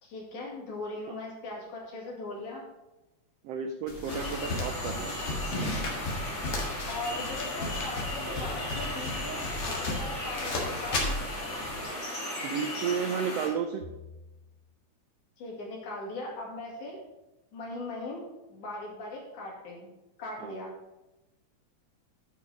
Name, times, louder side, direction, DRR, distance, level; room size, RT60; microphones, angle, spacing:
voice 1, 0.0-2.6 6.9-11.2 15.4-17.0 17.5-18.2 18.5-19.9 20.2-20.7, left 2 dB, 75° left, -3 dB, 3.9 m, -39 dB
voice 2, 3.4-5.1 12.4-13.8 20.4-20.5, right 6 dB, 85° right, 6 dB, 1.4 m, -32 dB
sound 1, 3.9-11.8, left 2 dB, 50° left, 2.4 m, -35 dB
sound 2, 4.1-13.5, left 1 dB, 35° left, 3.1 m, -36 dB
sound 3, 9.6-10.7 13.8-14.7, left 2 dB, 60° right, 1.4 m, -50 dB
9.7 x 6.0 x 4.9 m, 1.0 s
omnidirectional pair, 3.5 m